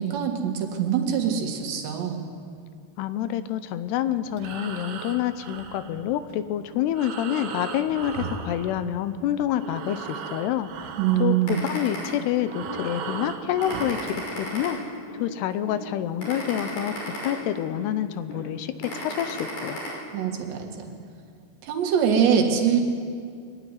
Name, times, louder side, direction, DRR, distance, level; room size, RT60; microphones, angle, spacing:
voice 1, 0.0-2.2 11.0-11.6 20.1-20.7 21.6-22.8, right 8 dB, 80° right, 2 dB, 4.1 m, -23 dB
voice 2, 3.0-10.7 11.2-14.8 15.2-19.8, left 11 dB, 80° left, 12 dB, 2.7 m, -27 dB
Breathing, 4.3-9.3 9.5-14.2, right 5 dB, 65° right, 2.9 m, -37 dB
sound 1, 11.5-12.6 13.1-13.2 13.6-15.2 15.7-15.8 16.2-17.9 18.3-18.4 18.8-19.9, left 2 dB, 60° left, 8.0 m, -35 dB
23.5 x 11.5 x 9.8 m, 2.3 s
omnidirectional pair, 4.9 m